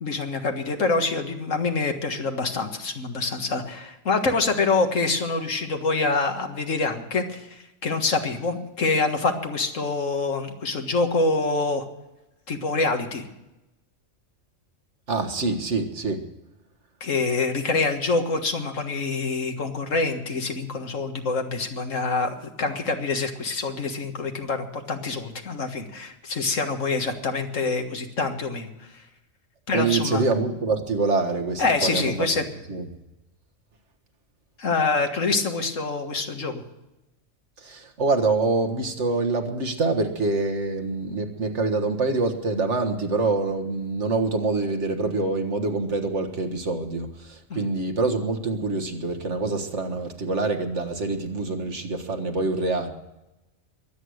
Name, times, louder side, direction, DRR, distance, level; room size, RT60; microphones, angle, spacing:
voice 1, 0.0-11.9 12.5-13.2 17.0-28.7 29.7-30.2 31.6-32.4 34.6-36.6 47.5-47.6, left 3 dB, 70° left, 5 dB, 2.0 m, -26 dB
voice 2, 15.1-16.2 29.7-32.3 32.7-32.9 37.6-52.9, right 3 dB, 60° right, 5 dB, 1.9 m, -25 dB
23.0 x 8.9 x 6.4 m, 0.96 s
omnidirectional pair, 1.4 m